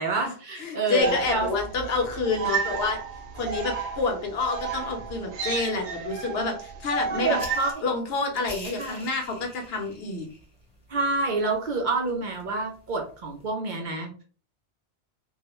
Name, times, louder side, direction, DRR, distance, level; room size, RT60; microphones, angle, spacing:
voice 1, 0.0-1.5 7.1-7.7 8.8-9.0 10.9-14.2, right 3 dB, 55° right, 1 dB, 0.6 m, -28 dB
voice 2, 0.6-3.0 3.3-7.4 7.8-10.3, left 3 dB, 65° left, 2 dB, 0.8 m, -28 dB
sound 1, 1.0-7.7, right 5 dB, 85° right, 0.9 m, -32 dB
sound 2, 7.3-13.5, left 1 dB, 35° left, 0.7 m, -47 dB
2.3 x 2.1 x 2.9 m, 0.40 s
omnidirectional pair, 1.1 m